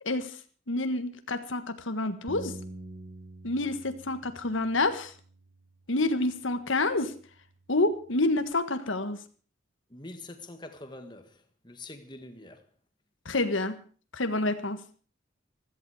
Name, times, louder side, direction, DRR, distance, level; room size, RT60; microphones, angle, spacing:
voice 1, 0.0-0.4 0.7-2.6 3.4-5.1 5.9-7.1 7.7-9.2 13.2-13.8 14.1-14.8, left 2 dB, 75° left, 1.5 m, -28 dB
Bass guitar, 2.3-8.5, right 1 dB, 25° right, 1.4 m, -48 dB
voice 2, 9.9-12.6, left 2 dB, 20° left, 1.7 m, -45 dB
16.0 x 14.5 x 4.9 m
head